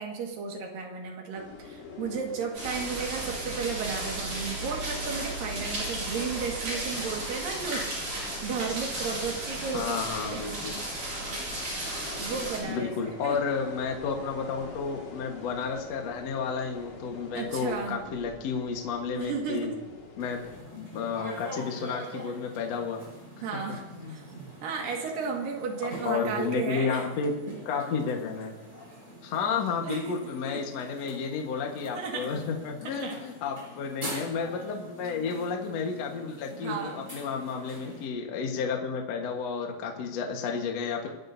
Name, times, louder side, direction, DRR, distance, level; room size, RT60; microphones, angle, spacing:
voice 1, 0.0-7.9 8.2-10.0 10.2-10.4 11.9-13.4 17.3-18.0 19.1-19.8 23.4-24.2 24.6-27.0 29.5-30.2 30.5-30.6 31.9-32.3 33.0-33.2 35.0-35.1 36.5-37.0, right 5 dB, 60° right, 1 dB, 3.4 m, -34 dB
sound 1, 1.3-20.6, left 4 dB, 40° left, 2.3 m, -46 dB
sound 2, 2.5-12.6, right 1 dB, 75° right, 9.7 m, -34 dB
voice 2, 9.7-10.8 12.7-19.7 20.2-20.4 20.7-23.0 24.0-24.2 25.8-27.3 27.7-28.6 29.2-41.1, left 5 dB, 55° left, 2 dB, 2.0 m, -31 dB
sound 3, 20.2-38.1, equal, 20° right, 5.3 m, -45 dB
29.5 x 14.5 x 2.7 m, 1.1 s
omnidirectional pair, 4.7 m